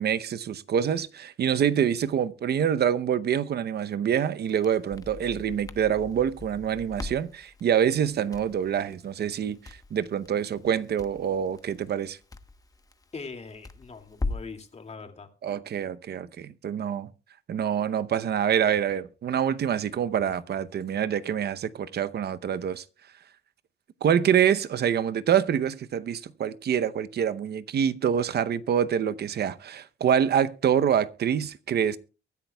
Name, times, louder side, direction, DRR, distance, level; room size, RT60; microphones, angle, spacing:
voice 1, 0.0-12.2 15.4-17.1 17.5-22.8 24.0-32.0, right 8 dB, 55° right, 0.8 m, -26 dB
Crackle, 4.4-14.6, left 3 dB, 20° left, 1.0 m, -40 dB
voice 2, 13.1-15.3, left 4 dB, 35° left, 2.4 m, -41 dB
23.0 x 10.5 x 2.3 m
cardioid pair, 90°, 20 cm